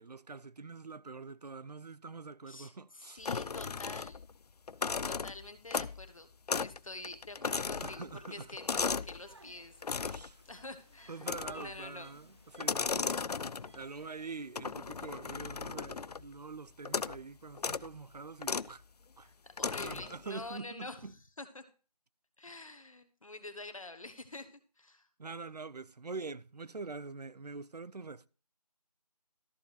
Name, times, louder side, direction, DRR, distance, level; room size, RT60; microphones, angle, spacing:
voice 1, 0.0-3.2 4.8-5.0 7.8-8.5 10.1-10.4 11.1-13.1 13.7-18.8 19.2-19.3 19.8-21.1 25.2-28.3, right 4 dB, 75° right, 0.6 m, -45 dB
voice 2, 2.5-4.2 5.0-6.3 6.6-11.3 11.5-12.1 12.7-12.9 13.6-13.7 19.2-21.1 21.4-21.6 22.4-25.1, left 2 dB, 55° left, 1.3 m, -47 dB
sound 1, 3.3-4.3 4.7-6.1 6.5-6.8 7.0-9.2 9.8-10.3 11.2-11.8 12.5-13.8 14.6-16.3 16.9-17.2 17.6-17.9 18.4-18.7 19.6-20.1, left 5 dB, 70° left, 0.4 m, -36 dB
sound 2, 9.1-14.5, right 2 dB, 45° right, 1.0 m, -60 dB
13.5 x 4.6 x 4.7 m
figure-of-eight pair, 170°, 21 cm